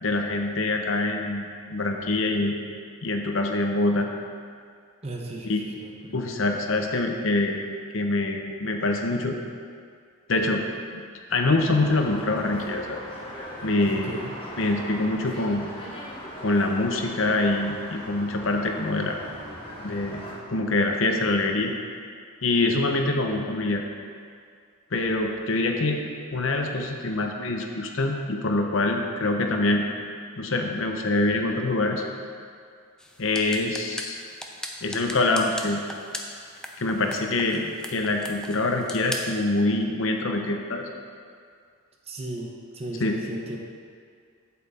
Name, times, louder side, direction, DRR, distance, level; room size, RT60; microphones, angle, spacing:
voice 1, 0.0-2.6 3.0-4.1 5.4-5.6 6.1-7.6 7.9-9.4 10.3-10.6 11.3-13.0 13.6-14.2 14.6-15.7 16.4-19.2 19.8-20.2 20.5-21.7 22.4-23.8 24.9-26.0 26.3-29.9 30.4-32.0 33.2-34.2 34.8-35.8 36.8-40.9 43.0-43.1, left 2 dB, 65° left, 3 dB, 0.8 m, -25 dB
voice 2, 5.0-6.1 13.9-14.3 42.1-43.6, right 1 dB, 30° right, 0 dB, 0.9 m, -36 dB
sound 1, 11.7-20.3, equal, 25° left, 1.5 m, -40 dB
sound 2, 33.0-39.4, left 1 dB, 5° left, 0.5 m, -39 dB
8.3 x 7.5 x 4.2 m, 2.1 s
head